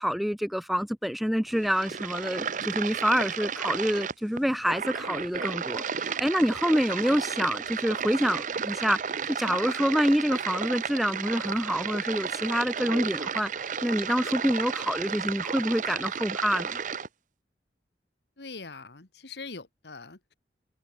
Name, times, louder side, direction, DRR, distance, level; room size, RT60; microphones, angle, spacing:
voice 1, 0.0-16.8, equal, ahead, 0.3 m, -27 dB
sound 1, 1.5-17.1, right 7 dB, 45° right, 0.7 m, -33 dB
voice 2, 18.4-20.3, left 4 dB, 70° left, 1.7 m, -42 dB
head